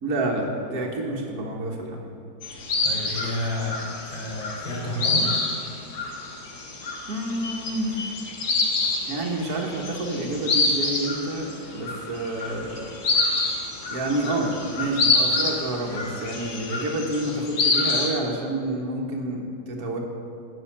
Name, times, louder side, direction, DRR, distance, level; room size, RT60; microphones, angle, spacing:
voice 1, 0.0-2.1 7.1-8.0 9.1-12.8 13.9-20.0, right 1 dB, 60° right, 0 dB, 1.8 m, -28 dB
sound 1, 2.4-18.1, left 3 dB, 65° left, 1.9 m, -27 dB
voice 2, 2.8-5.3 14.8-15.0, left 1 dB, 20° left, -8 dB, 3.2 m, -31 dB
10.0 x 6.4 x 8.7 m, 2.4 s
omnidirectional pair, 1.9 m